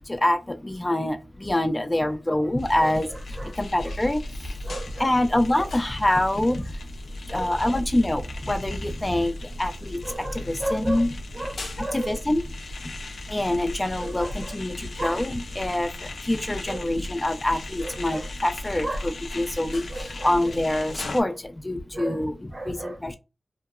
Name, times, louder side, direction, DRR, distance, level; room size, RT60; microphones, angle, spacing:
voice 1, 0.0-4.5 5.0-6.8 7.3-11.1 11.8-12.4 13.3-23.2, left 1 dB, 25° left, 0.4 m, -26 dB
voice 2, 2.0-2.3 2.8-3.6 3.8-3.9 4.6-5.1 7.3-7.8 10.0-11.1 11.3-12.2 14.0-14.6 15.0-15.2 16.7-16.9 17.8-18.3 18.8-19.0 19.9-20.6 21.2-21.4 21.9-22.2 22.5-23.0, right 1 dB, 50° right, 0.8 m, -35 dB
sound 1, 2.6-21.2, left 1 dB, 85° left, 0.5 m, -36 dB
2.8 x 2.0 x 2.3 m
cardioid pair, 40°, 0 cm